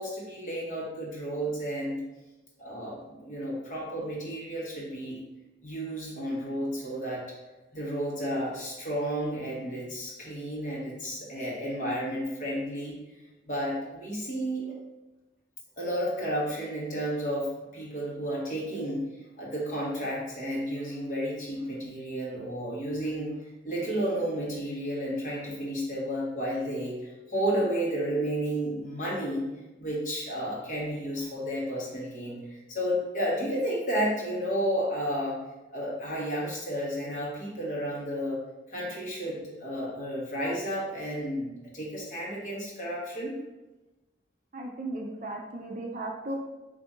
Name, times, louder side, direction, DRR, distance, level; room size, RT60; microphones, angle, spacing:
voice 1, 0.0-2.0 2.6-5.2 5.6-7.3 7.7-13.0 13.4-14.8 15.8-19.0 19.4-29.5 29.8-35.4 35.7-38.4 38.7-43.4, equal, 40° left, -5 dB, 1.1 m, -32 dB
voice 2, 44.5-46.4, right 2 dB, 40° right, 1 dB, 0.4 m, -36 dB
4.1 x 2.6 x 3.6 m, 1.1 s
head